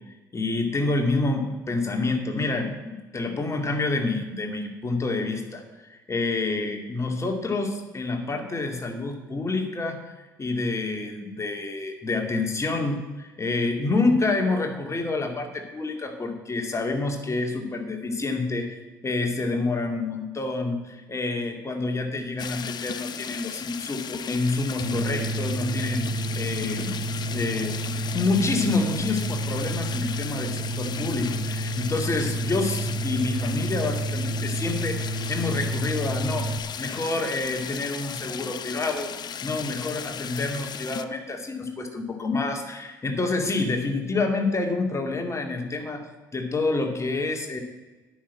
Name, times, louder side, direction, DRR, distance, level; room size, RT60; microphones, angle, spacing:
voice 1, 0.3-5.6 5.9-27.8 28.1-36.5 36.8-39.1 39.4-46.1 46.3-47.6, left 3 dB, 30° left, 4 dB, 2.3 m, -28 dB
sound 1, 22.4-41.0, left 7 dB, 45° left, 0.7 m, -36 dB
sound 2, 24.8-36.6, right 2 dB, 65° right, 1.1 m, -30 dB
10.0 x 6.2 x 8.7 m, 1.2 s
hypercardioid pair, 50°, 10 cm